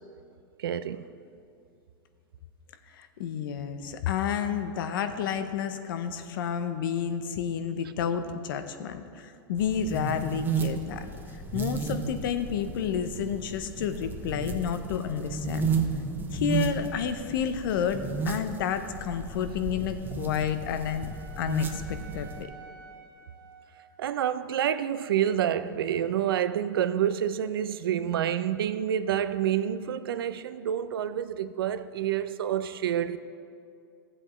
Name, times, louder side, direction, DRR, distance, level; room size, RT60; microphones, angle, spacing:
voice 1, 0.6-1.1 24.0-33.2, right 10 dB, 85° right, 0.5 m, -28 dB
voice 2, 2.9-11.1 11.3-15.7 16.3-21.1 21.4-22.3, left 8 dB, 70° left, 0.8 m, -30 dB
sound 1, 9.6-22.4, right 5 dB, 15° right, 0.7 m, -33 dB
Wind instrument woodwind instrument, 20.0-24.2, right 5 dB, 70° right, 1.3 m, -50 dB
15.5 x 7.6 x 3.2 m
hypercardioid pair, 125°, 12 cm